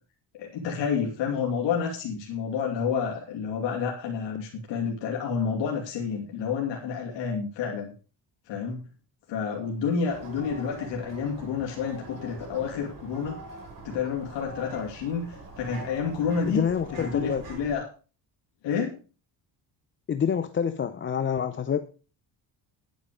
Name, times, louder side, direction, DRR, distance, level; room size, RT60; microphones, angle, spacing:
voice 1, 0.4-7.9 8.5-8.9 9.3-13.4 13.8-16.7 17.0-17.8 18.6-19.0, left 6 dB, 90° left, -1 dB, 2.8 m, -29 dB
sound 1, 10.1-17.8, right 1 dB, 50° right, 7.2 m, -43 dB
voice 2, 16.5-17.5 20.1-21.9, left 7 dB, 30° left, 10 dB, 0.6 m, -27 dB
10.5 x 9.3 x 5.1 m, 0.36 s
cardioid pair, 135°, 42 cm